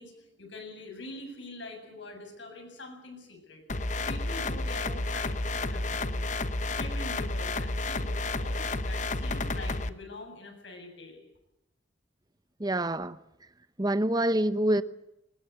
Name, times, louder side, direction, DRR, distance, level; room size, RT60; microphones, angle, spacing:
voice 1, 0.0-6.1 6.6-11.3, left 2 dB, 80° left, 3 dB, 7.7 m, -45 dB
sound 1, 3.7-9.9, left 2 dB, 40° left, 0.9 m, -31 dB
voice 2, 12.6-13.2 13.8-14.8, right 1 dB, 20° right, 13 dB, 0.8 m, -26 dB
21.0 x 20.5 x 8.2 m, 0.89 s
head